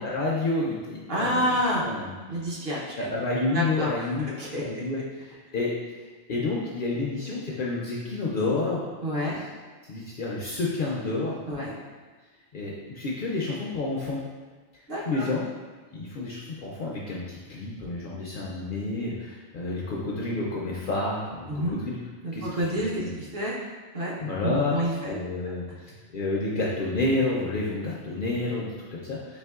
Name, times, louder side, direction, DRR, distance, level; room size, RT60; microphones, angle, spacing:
voice 1, 0.0-1.4 1.8-2.1 2.5-2.7 3.0-4.3 4.5-5.7 6.3-8.8 9.8-11.6 12.5-14.2 15.1-15.5 15.9-22.0 22.3-22.5 23.0-23.2 24.2-25.6 26.1-29.4, left 2 dB, 60° left, -4 dB, 0.6 m, -29 dB
voice 2, 1.1-1.8 2.3-3.1 3.5-4.8 9.0-9.4 11.5-11.7 14.9-15.3 21.5-21.8 22.2-23.5 23.9-25.2 25.4-25.8, equal, 55° right, -6 dB, 0.9 m, -29 dB
4.3 x 2.9 x 2.3 m, 1.3 s
omnidirectional pair, 1.2 m